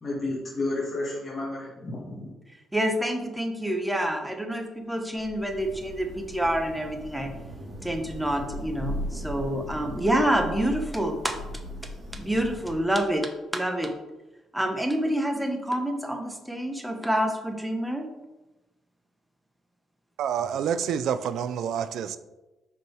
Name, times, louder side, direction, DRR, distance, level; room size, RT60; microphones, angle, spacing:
voice 1, 0.0-2.3, left 2 dB, 30° left, 1.9 m, -31 dB
voice 2, 2.7-7.3 7.8-11.4 12.1-13.9 14.5-18.1, right 1 dB, 5° right, 1.0 m, -27 dB
Thunder / Rain, 5.1-13.2, left 1 dB, 40° right, 2.2 m, -38 dB
voice 3, 20.2-22.2, right 8 dB, 75° right, 0.4 m, -28 dB
5.6 x 5.3 x 4.6 m
cardioid pair, 90°, 0 cm